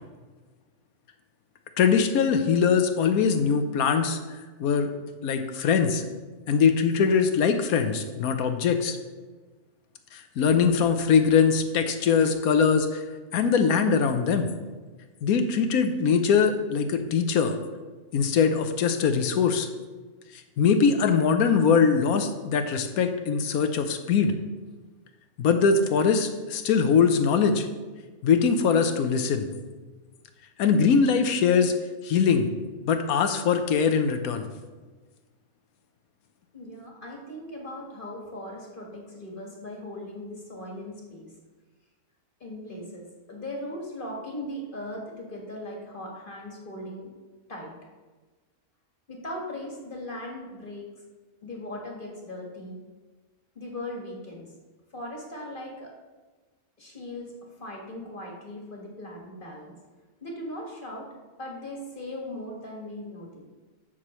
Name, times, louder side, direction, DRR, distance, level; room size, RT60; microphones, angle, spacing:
voice 1, 1.8-4.2 4.6-4.9 5.2-6.0 6.5-9.0 10.1-13.0 13.3-14.5 15.2-17.5 18.1-19.7 20.6-24.3 25.4-27.7 28.2-29.5 30.6-31.7 32.0-32.5 32.8-34.5, left 6 dB, 80° left, 7 dB, 1.2 m, -22 dB
voice 2, 36.5-41.3 42.4-47.1 47.5-47.7 49.1-50.9 51.4-52.8 53.6-54.5 54.9-55.9 56.8-59.8 60.2-61.1 61.4-63.5, left 1 dB, 35° left, -1 dB, 1.7 m, -38 dB
13.5 x 6.2 x 3.1 m, 1.3 s
omnidirectional pair, 1.5 m